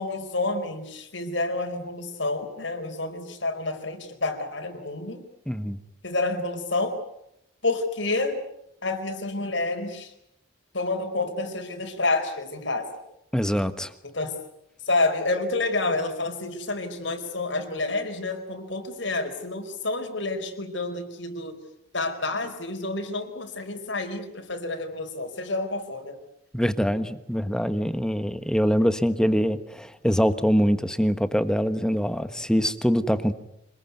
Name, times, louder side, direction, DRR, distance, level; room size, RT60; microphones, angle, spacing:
voice 1, 0.0-5.2 6.0-7.0 7.6-8.4 8.8-10.1 10.7-12.9 14.0-14.3 14.8-21.6 21.9-26.2, left 2 dB, 70° left, 5 dB, 4.5 m, -29 dB
voice 2, 5.5-5.8 13.3-13.9 26.5-33.3, equal, 5° left, 11 dB, 1.2 m, -24 dB
26.5 x 21.0 x 9.5 m, 0.80 s
head